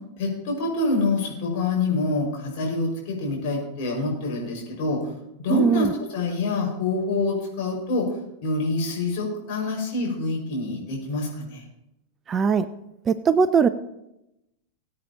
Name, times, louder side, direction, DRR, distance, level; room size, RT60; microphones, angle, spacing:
voice 1, 0.2-5.0 5.4-5.9 6.1-8.0 8.4-11.6, left 3 dB, 45° left, -2 dB, 5.4 m, -26 dB
voice 2, 5.5-5.9 12.3-12.7 13.1-13.7, right 6 dB, 25° right, 13 dB, 0.5 m, -20 dB
20.5 x 8.7 x 2.9 m, 0.87 s
figure-of-eight pair, 90°, 0 cm